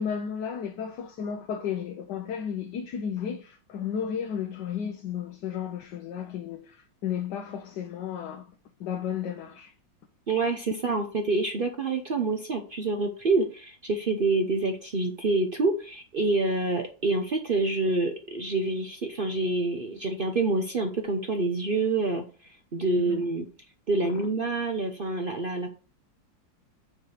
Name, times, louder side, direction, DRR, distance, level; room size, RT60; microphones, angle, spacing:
voice 1, 0.0-8.4 8.8-9.7 23.0-23.3 24.0-24.3, left 8 dB, 70° left, 1.4 m, -33 dB
voice 2, 10.3-22.2 22.7-23.5 23.9-25.7, right 3 dB, 55° right, 0.6 m, -27 dB
5.8 x 4.7 x 6.5 m
omnidirectional pair, 2.0 m